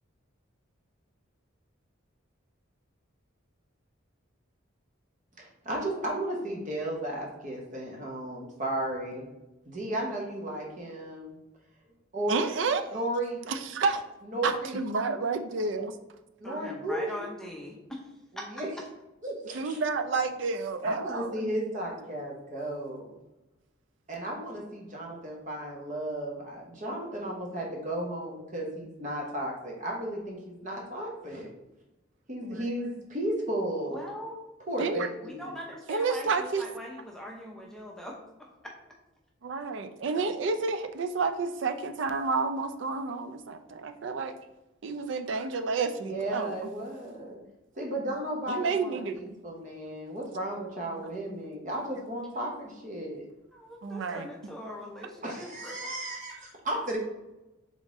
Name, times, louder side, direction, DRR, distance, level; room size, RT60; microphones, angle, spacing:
voice 1, 5.4-9.2 9.7-11.4 12.1-12.3 12.9-13.6 14.2-14.8 16.4-17.3 18.5-18.7 19.2-19.8 20.8-23.1 24.1-31.5 32.3-34.0 34.7-35.5 46.0-47.4 47.7-53.2 55.2-57.0, right 1 dB, 40° right, -1 dB, 0.8 m, -34 dB
voice 2, 12.3-13.0 13.5-14.0 14.4-15.9 19.5-21.5 32.4-32.7 34.8-35.1 35.9-36.6 39.4-44.4 44.8-46.7 48.5-49.2 53.8-54.3, right 4 dB, 65° right, 8 dB, 0.4 m, -30 dB
voice 3, 16.4-18.0 18.4-18.5 33.9-34.4 35.2-38.5 53.5-55.9, left 1 dB, 5° left, -2 dB, 0.6 m, -41 dB
3.9 x 3.6 x 3.6 m, 0.97 s
head